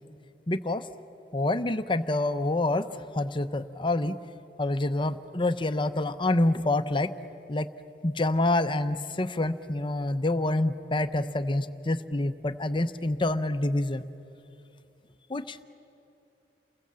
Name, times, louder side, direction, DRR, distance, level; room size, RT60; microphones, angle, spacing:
voice 1, 0.5-0.8 1.3-2.9 3.1-4.2 4.6-7.1 7.5-7.7 8.0-14.0 15.3-15.6, left 2 dB, 30° left, 11 dB, 0.7 m, -27 dB
29.0 x 21.5 x 7.6 m, 2.8 s
head